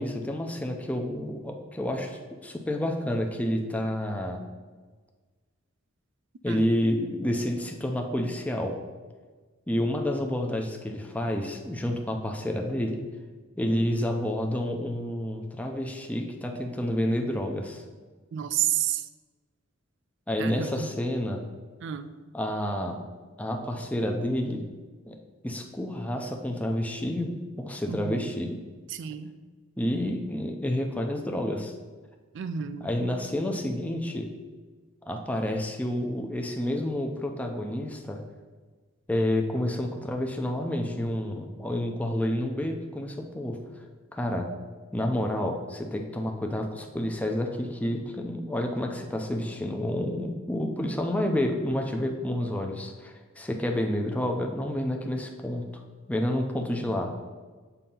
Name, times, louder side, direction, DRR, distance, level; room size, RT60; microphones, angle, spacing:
voice 1, 0.0-4.5 6.4-8.8 9.7-13.0 13.6-17.8 20.3-21.4 22.3-23.0 23.4-24.6 25.1-25.2 25.4-28.6 29.8-31.7 32.8-34.3 35.1-38.2 39.1-43.6 44.1-44.5 44.9-55.8 56.1-57.1, left 1 dB, 5° left, 2 dB, 0.5 m, -29 dB
voice 2, 18.3-19.1 20.4-20.9 21.8-22.1 27.9-28.3 28.9-29.4 32.3-32.9, right 10 dB, 60° right, 10 dB, 0.4 m, -30 dB
6.9 x 2.8 x 5.4 m, 1.4 s
head